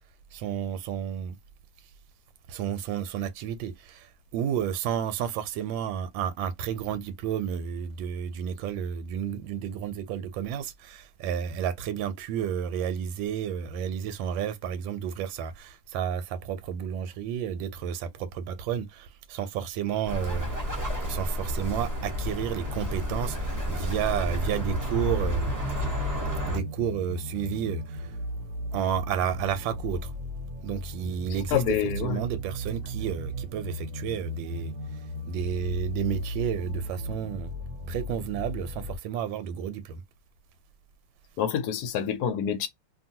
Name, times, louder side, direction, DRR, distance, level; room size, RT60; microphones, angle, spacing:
voice 1, 0.3-1.4 2.5-20.5 21.1-25.5 26.5-28.1 28.7-30.1 30.6-34.7 35.3-37.5 37.9-40.0, right 9 dB, 85° right, 1.4 m, -31 dB
Bird, 20.1-26.6, equal, 15° right, 0.7 m, -30 dB
Bass & Pad, 24.2-39.0, right 1 dB, 65° right, 1.2 m, -36 dB
voice 2, 31.5-32.2 41.4-42.7, left 8 dB, 65° left, 1.0 m, -27 dB
2.9 x 2.5 x 2.7 m
omnidirectional pair, 2.1 m